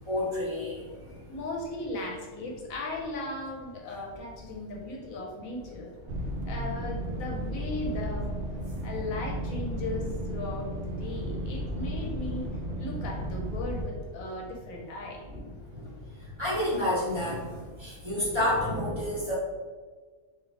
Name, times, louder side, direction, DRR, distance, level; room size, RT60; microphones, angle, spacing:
voice 1, 0.1-0.8 11.8-12.1 15.2-15.4 16.4-17.5 17.8-19.3, left 1 dB, 20° right, -9 dB, 1.0 m, -29 dB
voice 2, 1.3-5.9 6.5-8.3 8.8-12.5 12.8-15.2, left 2 dB, 70° left, 0 dB, 1.0 m, -37 dB
sound 1, 6.1-13.8, equal, 70° right, 0.5 m, -34 dB
3.2 x 2.6 x 3.7 m, 1.5 s
omnidirectional pair, 1.5 m